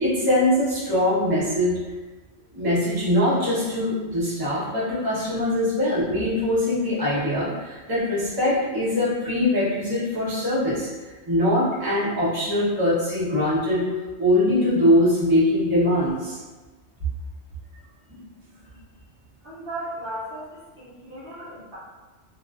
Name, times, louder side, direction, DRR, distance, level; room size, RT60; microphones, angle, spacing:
voice 1, 0.0-1.7 2.5-10.9 11.3-13.8 14.2-16.4 18.1-18.2, left 1 dB, 20° right, -9 dB, 0.7 m, -22 dB
voice 2, 19.4-21.8, right 1 dB, 55° right, -10 dB, 0.7 m, -36 dB
2.4 x 2.2 x 2.3 m, 1.2 s
omnidirectional pair, 1.3 m